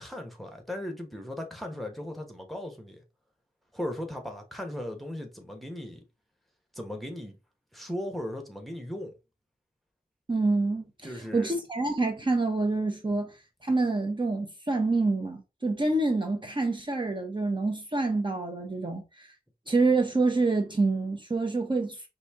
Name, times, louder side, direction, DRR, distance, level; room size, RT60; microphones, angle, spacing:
voice 1, 0.0-3.0 3.7-6.0 6.7-7.4 7.7-9.1 11.0-11.6, left 1 dB, ahead, 1.1 m, -37 dB
voice 2, 10.3-13.3 13.6-19.3 19.7-22.1, right 3 dB, 30° right, 0.8 m, -27 dB
5.1 x 2.7 x 3.5 m
wide cardioid pair, 95°, 16 cm